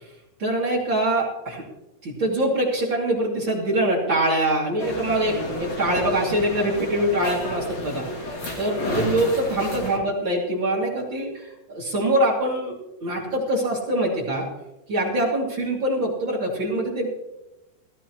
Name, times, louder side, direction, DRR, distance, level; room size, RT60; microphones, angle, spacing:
voice 1, 0.4-1.6 2.0-14.5 14.9-17.1, right 1 dB, 35° right, -3 dB, 2.6 m, -24 dB
sound 1, 4.8-10.0, equal, 40° left, 3.0 m, -31 dB
17.0 x 14.5 x 3.1 m, 0.97 s
omnidirectional pair, 4.7 m